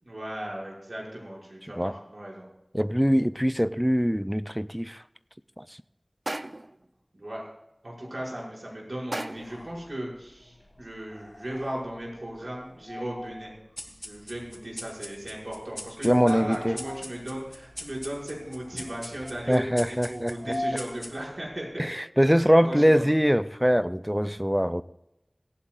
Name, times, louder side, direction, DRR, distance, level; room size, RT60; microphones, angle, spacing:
voice 1, 0.0-2.4 7.1-7.4 7.8-13.5 14.0-21.9 22.6-23.0, right 1 dB, 75° right, 5.8 m, -36 dB
voice 2, 2.7-5.0 5.6-5.7 16.0-16.8 19.5-20.3 21.8-24.8, equal, 5° right, 0.4 m, -23 dB
sound 1, 6.3-6.8 9.1-9.7, right 1 dB, 60° right, 0.6 m, -35 dB
sound 2, 9.3-21.8, left 1 dB, 55° left, 1.3 m, -44 dB
sound 3, 13.8-21.5, left 1 dB, 35° left, 2.4 m, -43 dB
18.0 x 15.0 x 2.5 m
wide cardioid pair, 40°, 0 cm